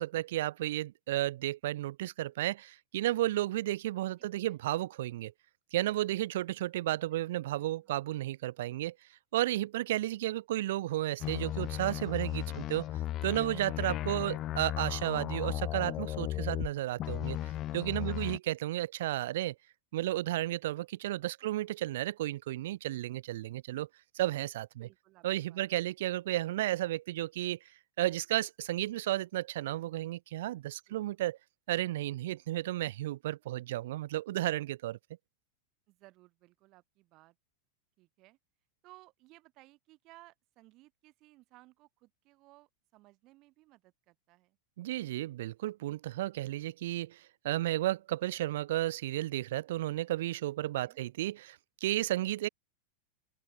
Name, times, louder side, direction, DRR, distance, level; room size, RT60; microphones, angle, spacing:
voice 1, 0.0-5.3 5.7-8.9 9.3-12.8 13.2-19.5 19.9-23.9 24.1-24.9 25.2-27.6 28.0-31.4 31.7-35.0 44.8-52.5, right 15 dB, 55° right, 1.0 m, -33 dB
voice 2, 4.2-4.6 7.1-7.2 7.6-8.3 12.5-12.8 18.0-18.4 21.4-21.5 24.8-25.6 30.8-31.3 35.9-37.4 38.0-38.4 38.8-44.6 50.8-51.0, right 20 dB, 40° right, 4.1 m, -60 dB
sound 1, 11.2-16.7 17.0-18.4, left 14 dB, 35° left, 0.5 m, -36 dB
open air
figure-of-eight pair, 90°, 0 cm